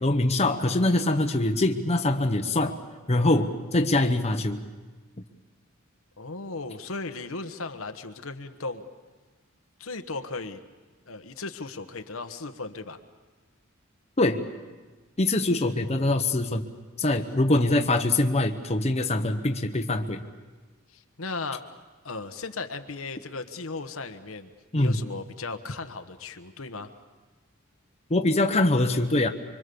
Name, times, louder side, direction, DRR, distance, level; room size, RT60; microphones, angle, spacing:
voice 1, 0.0-2.7 3.1-4.6 14.2-14.4 15.2-16.6 17.0-20.2 24.7-25.0 28.1-29.3, left 2 dB, 30° left, 5 dB, 1.1 m, -23 dB
voice 2, 6.2-8.8 9.8-10.6 11.1-13.0 15.6-16.1 17.5-17.8 20.9-21.6 22.0-26.9, left 3 dB, 75° left, 7 dB, 1.2 m, -36 dB
25.5 x 24.5 x 7.0 m, 1.3 s
head